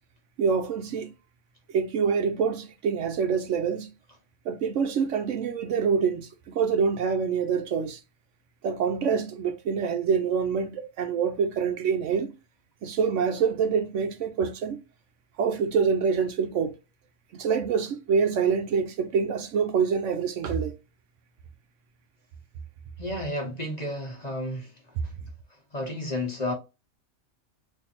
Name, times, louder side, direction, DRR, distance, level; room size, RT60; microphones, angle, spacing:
voice 1, 0.4-1.1 1.7-3.9 4.5-6.3 6.5-8.0 8.6-12.3 12.8-14.8 15.4-16.7 17.3-20.7, right 6 dB, 70° right, 0.9 m, -26 dB
voice 2, 23.0-24.7 25.7-26.5, left 1 dB, 35° left, 1.1 m, -31 dB
4.0 x 2.7 x 2.8 m
omnidirectional pair, 1.4 m